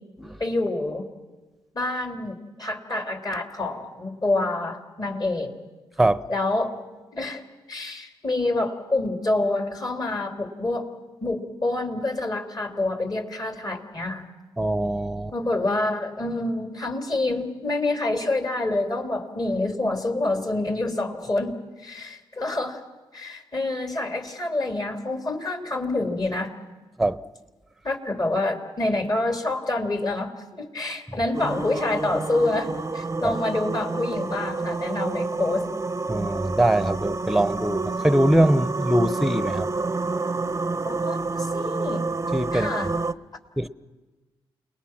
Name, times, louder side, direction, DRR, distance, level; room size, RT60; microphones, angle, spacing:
voice 1, 0.4-1.1 1.8-5.5 6.3-6.7 7.1-7.4 7.7-10.9 11.2-14.3 15.3-21.5 21.8-22.8 23.1-26.5 27.8-35.7 40.8-42.0 42.5-42.9, left 2 dB, 40° left, 3.5 m, -27 dB
voice 2, 14.6-15.3 27.0-27.2 33.2-33.3 36.1-39.7 42.3-42.9 43.6-43.7, right 1 dB, ahead, 0.9 m, -22 dB
sound 1, 31.3-43.1, right 3 dB, 25° right, 0.7 m, -29 dB
29.0 x 20.0 x 6.0 m
supercardioid pair, 45°, 11 cm